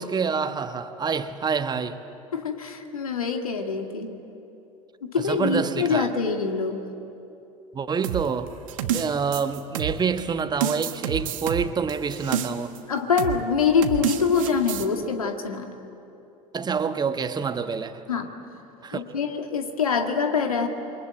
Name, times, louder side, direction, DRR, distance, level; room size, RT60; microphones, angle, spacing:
voice 1, 0.0-2.0 5.2-6.1 7.7-8.5 8.8-12.7 16.5-18.0 18.8-19.0, right 6 dB, 20° right, 10 dB, 1.2 m, -27 dB
voice 2, 2.3-4.1 5.0-6.8 12.9-15.7 18.1-18.3 18.9-20.7, left 5 dB, 75° left, 5 dB, 2.0 m, -25 dB
sound 1, 8.0-10.2 10.6-12.8 13.2-13.4 13.8-14.9, right 10 dB, 65° right, 1.3 m, -29 dB
28.5 x 24.0 x 8.7 m, 2.9 s
figure-of-eight pair, 70°, 18 cm